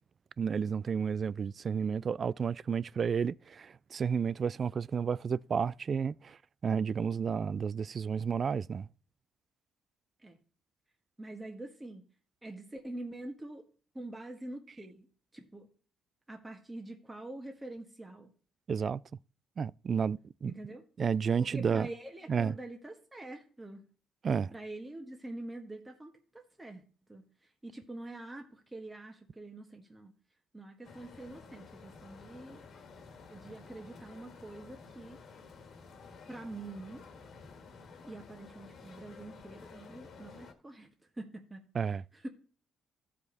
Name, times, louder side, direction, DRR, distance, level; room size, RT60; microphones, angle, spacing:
voice 1, 0.4-6.4 6.6-8.9 18.7-19.0 19.6-20.5 21.0-21.9 22.3-22.5 24.2-24.5 41.7-42.0, right 6 dB, 45° right, 0.3 m, -31 dB
voice 2, 11.2-12.0 12.4-13.6 13.9-15.1 15.3-15.7 16.3-18.3 20.4-20.8 21.4-23.8 24.5-26.8 27.1-27.3 27.6-30.1 30.5-32.7 33.3-35.2 36.3-37.0 38.0-40.9 41.2-42.3, right 2 dB, 15° right, 1.6 m, -45 dB
sound 1, 30.8-40.5, left 4 dB, 65° left, 1.8 m, -52 dB
14.0 x 5.1 x 4.0 m
cardioid pair, 90°, 0 cm